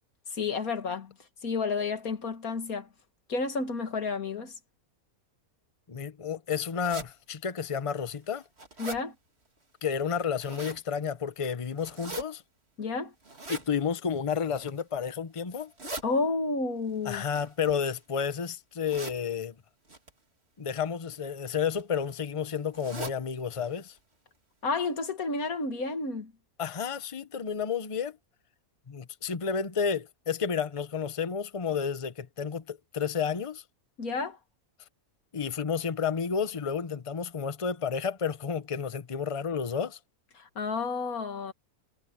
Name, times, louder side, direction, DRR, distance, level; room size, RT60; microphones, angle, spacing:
voice 1, 0.3-1.1 1.4-2.9 3.3-4.5 8.8-9.1 12.8-13.1 16.0-17.2 24.6-26.3 34.0-34.4 40.4-41.5, left 4 dB, 75° left, 2.4 m, -31 dB
voice 2, 5.9-8.4 9.8-12.4 13.5-15.7 17.0-19.5 20.6-23.9 26.6-28.2 28.9-33.6 35.3-40.0, left 6 dB, 25° left, 0.9 m, -31 dB
sound 1, 6.8-7.1 7.7-7.8 8.2-9.0 10.1-10.8 11.8-12.2 13.2-13.7 14.4-14.8 15.5-16.0 17.2-18.2 18.8-19.2 19.9-20.1 21.1-21.4 21.7-21.8 22.1-22.2 22.7-23.2 23.6-23.7 24.0-24.1 24.7-24.8 25.1-25.2, right 3 dB, 45° right, 3.0 m, -41 dB
omnidirectional pair, 1.5 m